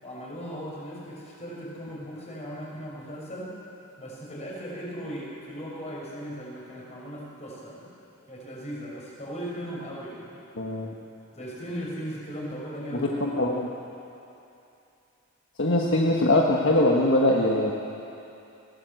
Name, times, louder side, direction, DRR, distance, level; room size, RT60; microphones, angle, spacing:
voice 1, 0.0-3.5 4.0-7.9 8.3-10.3 11.3-13.4, equal, 30° left, -4 dB, 5.9 m, -37 dB
voice 2, 10.6-10.9 13.0-13.7 15.6-17.7, left 1 dB, 60° left, -2 dB, 1.5 m, -22 dB
21.0 x 17.5 x 7.9 m, 2.8 s
head